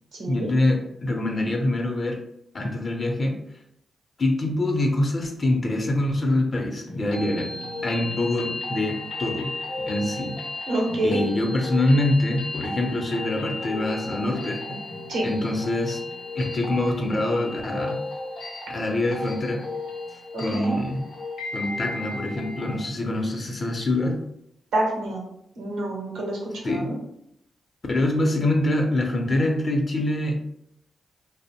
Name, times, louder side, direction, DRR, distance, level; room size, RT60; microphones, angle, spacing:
voice 1, 0.3-2.2 2.5-3.4 4.2-7.5 7.8-9.5 9.9-10.3 11.0-14.8 15.2-16.0 16.4-18.0 18.7-19.6 20.4-21.0 21.5-24.2 26.6-26.9 27.9-30.3, left 1 dB, 45° left, 3 dB, 0.5 m, -25 dB
sound 1, 6.9-22.8, left 2 dB, 90° left, 0.7 m, -34 dB
voice 2, 10.7-11.2 15.1-15.3 20.3-20.8 24.7-25.2 25.6-26.9, right 1 dB, 85° right, -1 dB, 0.7 m, -27 dB
2.5 x 2.0 x 2.8 m, 0.77 s
supercardioid pair, 50°, 0 cm